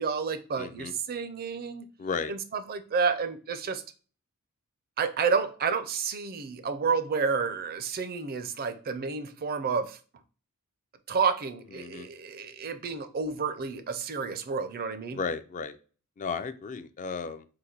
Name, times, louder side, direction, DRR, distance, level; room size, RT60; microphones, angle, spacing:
voice 1, 0.0-1.9 2.3-3.8 5.0-10.0 11.1-15.2, right 5 dB, 45° right, 0.5 m, -30 dB
voice 2, 0.6-0.9 2.0-2.3 11.8-12.1 15.1-15.8 16.2-17.5, left 5 dB, 35° left, 0.3 m, -34 dB
4.0 x 2.6 x 4.3 m
head